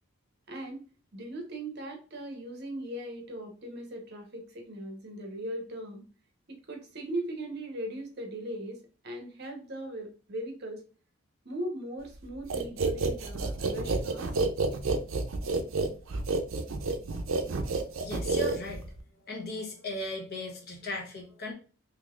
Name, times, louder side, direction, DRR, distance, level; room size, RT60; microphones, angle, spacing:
voice 1, 0.5-0.8 1.1-6.0 6.5-8.8 9.0-10.8 11.4-14.3, right 1 dB, 50° right, 2 dB, 0.9 m, -39 dB
sound 1, 12.5-19.0, right 3 dB, 70° right, 0.5 m, -29 dB
voice 2, 17.7-18.8 19.2-21.5, left 1 dB, 50° left, 0 dB, 0.9 m, -37 dB
3.8 x 3.1 x 2.4 m, 0.37 s
head